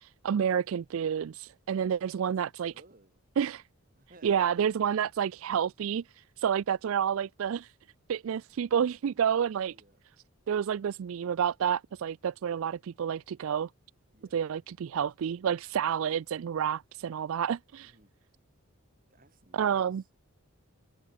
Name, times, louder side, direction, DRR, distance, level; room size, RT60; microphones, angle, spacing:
voice 1, 0.0-2.7 3.4-3.6 4.2-7.7 8.1-9.7 10.5-13.7 14.3-17.9 19.5-20.0, right 8 dB, 65° right, 0.3 m, -29 dB
voice 2, 2.2-3.2 3.9-4.5 9.7-10.0 14.1-14.4 17.8-18.1 19.1-19.9, right 2 dB, 40° right, 3.3 m, -59 dB
head